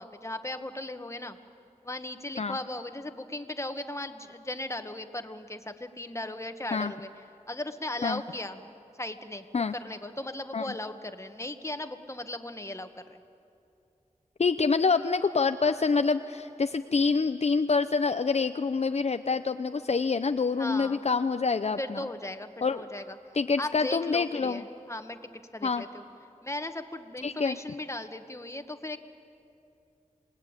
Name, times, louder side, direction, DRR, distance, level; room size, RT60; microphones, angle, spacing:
voice 1, 0.0-1.4 1.8-7.1 7.5-13.2 20.6-21.0 21.8-23.2 23.6-25.2 25.5-26.0 26.4-29.0, left 1 dB, 20° left, 8 dB, 1.5 m, -37 dB
voice 2, 14.4-22.0 22.6-22.8 23.3-24.6 25.6-25.8 27.2-27.6, left 4 dB, 55° left, 9 dB, 0.6 m, -26 dB
27.5 x 20.0 x 9.0 m, 2.6 s
wide cardioid pair, 60°, 13 cm